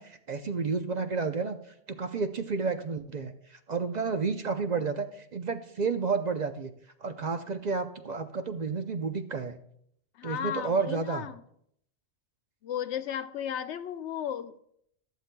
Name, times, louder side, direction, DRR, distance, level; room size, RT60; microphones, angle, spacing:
voice 1, 0.0-6.7 7.0-9.6 10.2-11.3, right 4 dB, 50° right, 8 dB, 0.6 m, -31 dB
voice 2, 10.1-11.4 12.6-14.6, left 9 dB, 80° left, 12 dB, 0.9 m, -35 dB
14.5 x 11.5 x 2.2 m, 0.70 s
omnidirectional pair, 1.1 m